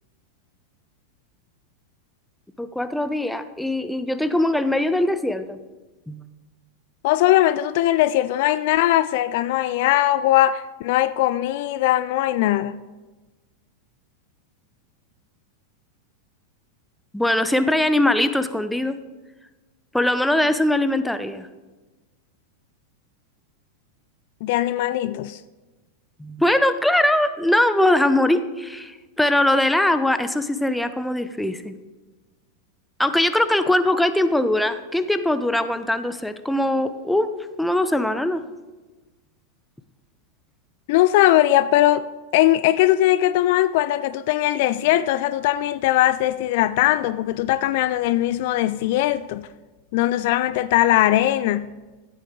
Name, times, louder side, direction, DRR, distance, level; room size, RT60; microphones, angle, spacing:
voice 1, 2.6-5.6 6.1-6.2 17.1-19.0 19.9-21.5 26.2-31.7 33.0-37.3 37.6-38.4, left 1 dB, 5° left, 0.6 m, -21 dB
voice 2, 7.0-12.8 24.4-25.4 40.9-42.1 42.3-49.5 49.9-51.7, left 14 dB, 50° left, 0.3 m, -20 dB
13.5 x 8.5 x 3.8 m
figure-of-eight pair, 90°, 0 cm